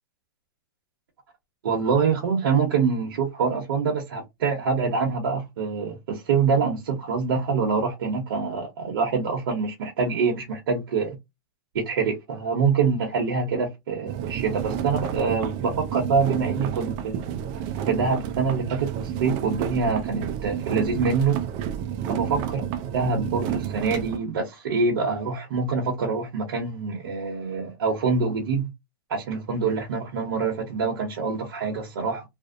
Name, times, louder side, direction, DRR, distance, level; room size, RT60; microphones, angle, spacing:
voice 1, 1.6-11.2 11.7-17.3 17.9-21.4 22.1-22.6 22.9-28.7 29.1-32.2, right 5 dB, 70° right, 0.8 m, -25 dB
sound 1, 14.1-24.2, right 9 dB, 35° right, 0.4 m, -30 dB
2.5 x 2.0 x 2.5 m
hypercardioid pair, 140°, 12 cm